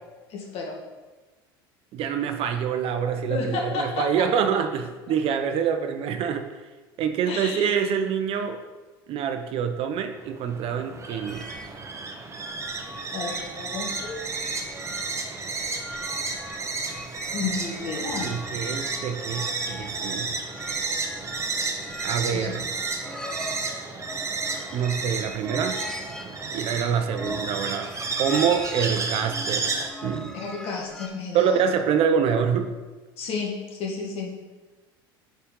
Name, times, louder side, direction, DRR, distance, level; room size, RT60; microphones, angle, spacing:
voice 1, 0.3-0.8 3.3-4.0 7.3-7.7 13.1-14.1 17.3-18.3 22.3-22.6 30.3-31.5 33.2-34.3, left 4 dB, 50° left, 0 dB, 1.6 m, -31 dB
voice 2, 1.9-6.4 7.0-8.6 9.1-11.5 18.2-20.3 22.0-22.6 24.7-25.8 26.5-27.9 28.2-29.7 30.0-30.3 31.3-32.7, right 7 dB, 50° right, 7 dB, 0.6 m, -26 dB
sound 1, 10.2-29.9, right 3 dB, 25° right, 0.8 m, -32 dB
sound 2, 11.3-31.1, equal, 5° left, 0.6 m, -41 dB
5.1 x 4.3 x 5.3 m, 1.2 s
hypercardioid pair, 80°, 12 cm